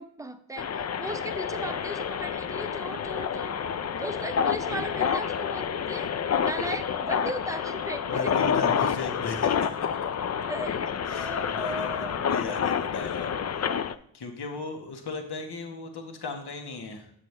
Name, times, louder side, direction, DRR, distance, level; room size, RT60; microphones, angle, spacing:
voice 1, 0.0-3.7 4.0-6.1 6.4-8.1 10.5-12.2, right 1 dB, 5° right, 0.6 m, -36 dB
sound 1, 0.6-13.9, left 7 dB, 35° left, 0.4 m, -29 dB
voice 2, 8.1-10.1 11.0-17.1, left 4 dB, 50° left, 1.3 m, -37 dB
7.6 x 6.5 x 3.2 m
cardioid pair, 50°, 49 cm